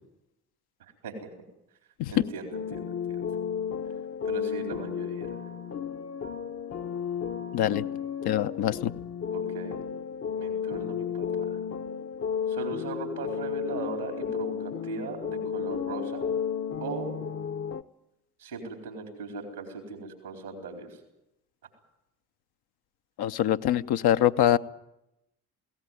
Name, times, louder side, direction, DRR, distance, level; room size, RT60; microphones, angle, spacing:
voice 1, 2.1-3.2 4.2-5.3 9.3-9.8 10.4-11.6 12.5-16.3 16.8-17.1 18.4-20.9, right 4 dB, 90° right, 4 dB, 4.2 m, -38 dB
sound 1, 2.5-17.8, left 7 dB, 30° left, 0.9 m, -33 dB
voice 2, 7.5-7.8 8.2-8.9 23.2-24.6, left 11 dB, 60° left, 9 dB, 1.0 m, -24 dB
22.0 x 17.5 x 9.3 m, 0.88 s
figure-of-eight pair, 45°, 44 cm